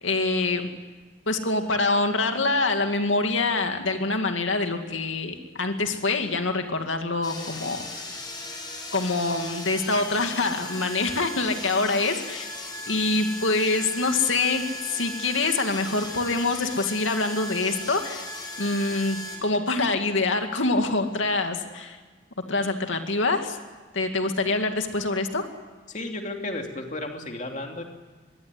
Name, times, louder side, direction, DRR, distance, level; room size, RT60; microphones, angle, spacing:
voice 1, 0.0-0.7 1.3-7.9 8.9-12.5 12.9-18.3 18.6-22.0 22.5-23.6 23.9-25.4, left 3 dB, 90° left, 5 dB, 2.5 m, -25 dB
sound 1, 7.2-19.4, left 1 dB, 20° left, 5.9 m, -37 dB
voice 2, 25.9-27.8, left 2 dB, 40° left, 3 dB, 2.7 m, -33 dB
24.5 x 21.5 x 9.9 m, 1.4 s
head